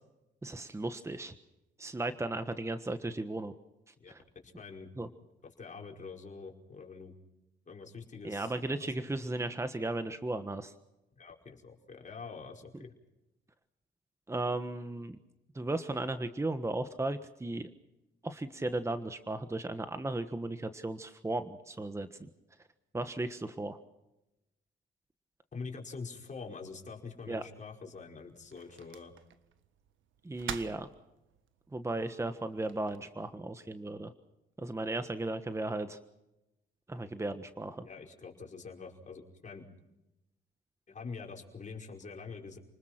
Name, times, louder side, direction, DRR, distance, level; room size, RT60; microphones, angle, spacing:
voice 1, 0.4-1.3 1.8-3.5 4.1-4.2 5.0-5.1 8.2-10.7 14.3-15.2 15.5-17.7 18.2-22.3 22.9-23.8 27.3-27.4 30.2-30.9 31.7-34.1 34.6-36.0 36.9-37.9, right 2 dB, 15° right, 10 dB, 1.4 m, -35 dB
voice 2, 4.4-4.9 5.6-7.1 7.7-8.5 8.8-9.1 11.2-12.9 25.5-29.1 37.8-39.7 40.9-42.6, left 4 dB, 40° left, 1 dB, 5.1 m, -45 dB
sound 1, 26.9-33.0, right 9 dB, 75° right, 1.6 m, -48 dB
29.5 x 20.0 x 6.0 m, 0.93 s
cardioid pair, 90°, 20 cm